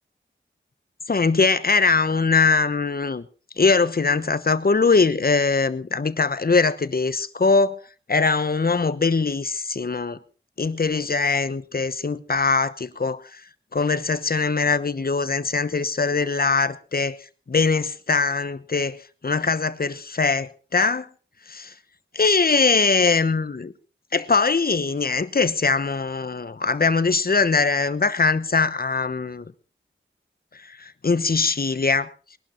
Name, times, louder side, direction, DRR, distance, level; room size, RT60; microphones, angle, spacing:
voice 1, 1.1-3.2 3.6-7.8 8.1-10.2 10.6-13.4 13.7-17.2 17.5-19.0 19.2-21.1 21.5-21.7 22.1-23.7 24.1-29.4 30.7-32.1, left 4 dB, 50° left, 1.0 m, -21 dB
21.5 x 11.5 x 4.4 m
wide cardioid pair, 80°, 20 cm